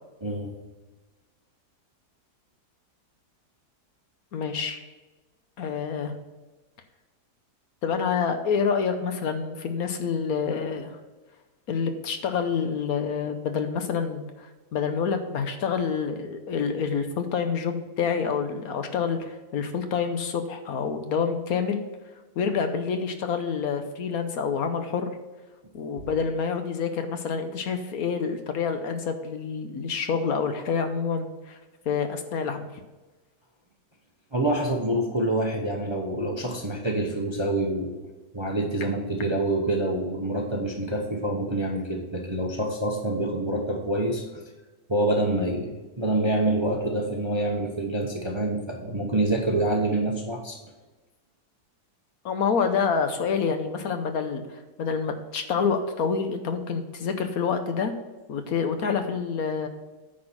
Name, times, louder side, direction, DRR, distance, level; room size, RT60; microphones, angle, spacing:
voice 1, 0.2-0.5 34.3-38.0 38.3-44.2 44.9-50.6, right 1 dB, 25° right, 1 dB, 0.7 m, -26 dB
voice 2, 4.3-4.8 5.6-6.1 7.8-11.0 11.7-21.8 22.4-25.2 25.7-31.6 31.9-32.7 52.2-57.9 58.3-59.7, left 6 dB, 65° left, 7 dB, 1.2 m, -27 dB
9.6 x 4.2 x 6.0 m, 1.2 s
omnidirectional pair, 1.8 m